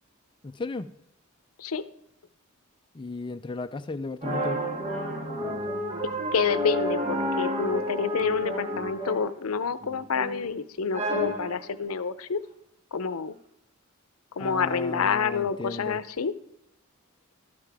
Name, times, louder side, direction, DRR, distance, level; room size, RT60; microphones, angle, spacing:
voice 1, 0.4-0.9 2.9-4.6 14.4-16.0, left 3 dB, 25° left, 8 dB, 0.4 m, -35 dB
sound 1, 4.2-9.4 9.8-10.5 10.9-11.7, equal, 35° right, 1.5 m, -30 dB
voice 2, 6.3-12.4 12.9-13.4 14.4-16.3, left 6 dB, 80° left, 14 dB, 0.6 m, -28 dB
12.5 x 8.7 x 3.4 m, 0.78 s
head